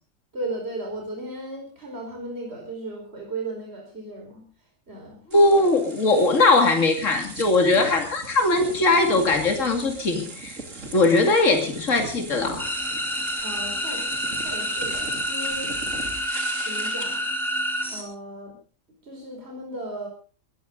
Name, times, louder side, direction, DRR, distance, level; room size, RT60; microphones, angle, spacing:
voice 1, 0.3-4.4 4.9-5.2 13.4-14.1 14.3-15.8 16.6-17.3 17.9-18.5 19.0-20.1, right 2 dB, 50° right, 0 dB, 5.2 m, -35 dB
voice 2, 5.3-10.6 10.9-12.6, left 2 dB, 70° left, 4 dB, 2.9 m, -20 dB
sound 1, 5.3-17.3, right 3 dB, 70° right, 3.3 m, -38 dB
sound 2, 12.6-18.0, equal, ahead, 4.1 m, -28 dB
21.5 x 15.5 x 3.9 m, 0.38 s
omnidirectional pair, 1.4 m